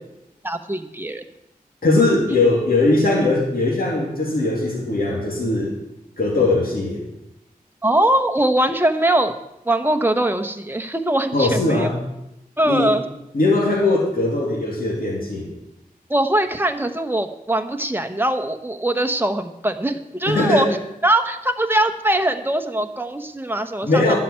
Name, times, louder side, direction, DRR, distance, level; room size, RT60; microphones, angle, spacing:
voice 1, 0.4-1.2 2.3-2.4 7.8-9.3 9.6-11.9 12.6-13.0 16.1-20.7 21.0-24.1, right 1 dB, 15° right, 7 dB, 1.1 m, -21 dB
voice 2, 1.8-5.8 6.2-7.0 11.3-12.0 12.7-13.0 13.3-15.5 20.3-20.7 23.8-24.2, left 2 dB, 75° left, -3 dB, 2.7 m, -20 dB
12.5 x 5.7 x 8.9 m, 0.88 s
wide cardioid pair, 75°, 15 cm